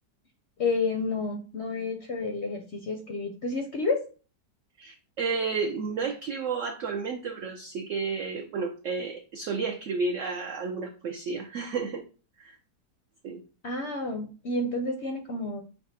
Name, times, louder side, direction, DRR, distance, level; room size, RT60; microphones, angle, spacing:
voice 1, 0.6-4.0 13.6-15.6, left 3 dB, 65° left, 3 dB, 0.7 m, -30 dB
voice 2, 4.8-12.0 12.4-12.6 13.2-13.4, right 4 dB, 80° right, 5 dB, 0.6 m, -32 dB
5.6 x 2.3 x 3.9 m, 0.36 s
omnidirectional pair, 1.9 m